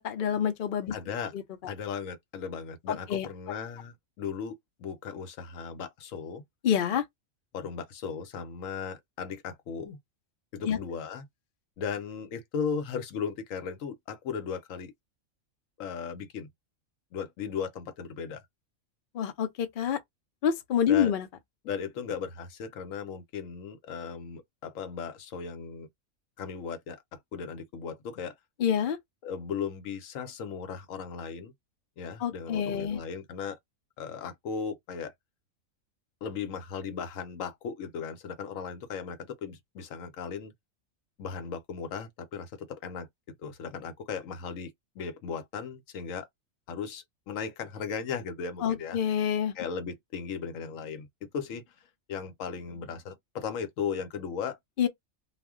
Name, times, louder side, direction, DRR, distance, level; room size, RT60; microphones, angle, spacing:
voice 1, 0.0-0.9 1.3-1.4 2.9-3.3 6.6-7.0 10.6-10.8 19.1-20.0 20.4-21.3 28.6-29.0 32.2-33.0 48.6-49.6 54.8-54.9, left 8 dB, 55° left, 0.6 m, -27 dB
voice 2, 0.9-1.3 1.7-6.4 7.5-10.0 10.5-11.3 11.8-14.9 15.8-16.5 17.1-18.4 20.9-21.1 21.6-25.9 26.4-28.3 29.2-31.5 32.0-33.6 34.0-35.1 36.2-40.5 41.2-46.3 46.7-49.0 49.5-51.6 52.1-54.6, left 6 dB, 75° left, 1.0 m, -37 dB
2.4 x 2.1 x 3.5 m
omnidirectional pair, 1.4 m